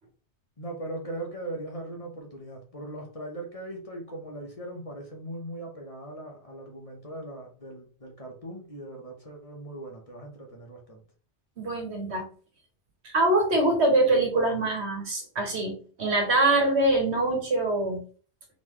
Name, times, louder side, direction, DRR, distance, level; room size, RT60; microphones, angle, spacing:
voice 1, 0.6-11.0, right 1 dB, 35° left, 0 dB, 1.2 m, -39 dB
voice 2, 11.6-12.3 13.0-18.1, right 2 dB, 75° right, 2 dB, 1.6 m, -24 dB
4.0 x 3.8 x 3.2 m, 0.41 s
omnidirectional pair, 1.1 m